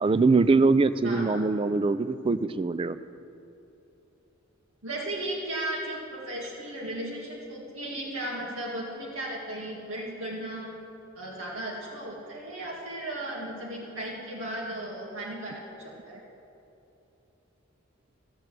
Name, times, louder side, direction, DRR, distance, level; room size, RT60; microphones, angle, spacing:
voice 1, 0.0-3.0, right 3 dB, 25° right, 14 dB, 0.3 m, -23 dB
voice 2, 1.0-1.4 4.8-10.7 11.2-16.2, right 1 dB, 85° right, -4 dB, 1.9 m, -35 dB
14.5 x 7.8 x 7.5 m, 2.9 s
head